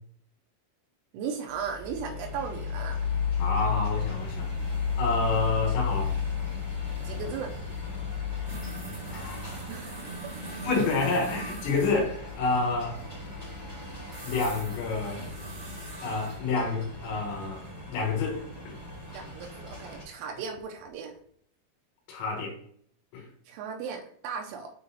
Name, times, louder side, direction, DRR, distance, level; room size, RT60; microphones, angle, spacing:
voice 1, 1.1-3.2 7.0-7.5 9.7-10.0 19.1-21.1 23.5-24.7, right 6 dB, 85° right, 3 dB, 3.1 m, -36 dB
sound 1, 1.5-20.0, left 5 dB, 30° left, 0.4 m, -34 dB
voice 2, 3.4-4.5 5.0-6.1 9.1-9.5 10.6-13.0 14.2-15.2 16.0-17.6 17.9-18.8 22.1-22.6 23.1-23.3, left 3 dB, 75° left, -1 dB, 3.5 m, -28 dB
sound 2, 6.1-6.2 6.4-12.0 14.1-16.4 18.6-18.7 20.2-20.9 21.1-21.2, right 2 dB, 60° right, 1.1 m, -43 dB
8.8 x 3.8 x 2.8 m, 0.63 s
omnidirectional pair, 5.5 m